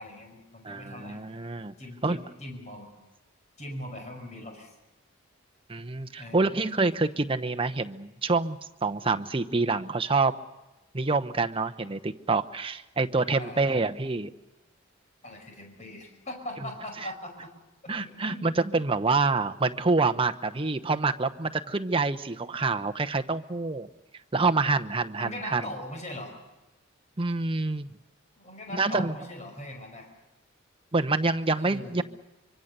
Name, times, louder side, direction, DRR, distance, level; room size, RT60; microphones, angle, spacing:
voice 1, 0.0-1.2 1.8-2.9 3.6-4.7 6.2-6.6 13.4-13.8 15.2-17.5 17.8-18.5 25.1-26.3 28.4-30.1 31.6-32.0, left 1 dB, 35° left, 3 dB, 5.4 m, -41 dB
voice 2, 0.6-1.7 2.0-2.2 5.7-10.3 10.9-14.3 17.9-23.9 24.3-25.6 27.2-27.9 28.7-29.1 30.9-32.0, right 3 dB, 25° right, 7 dB, 0.9 m, -27 dB
25.0 x 24.5 x 6.7 m, 1.0 s
head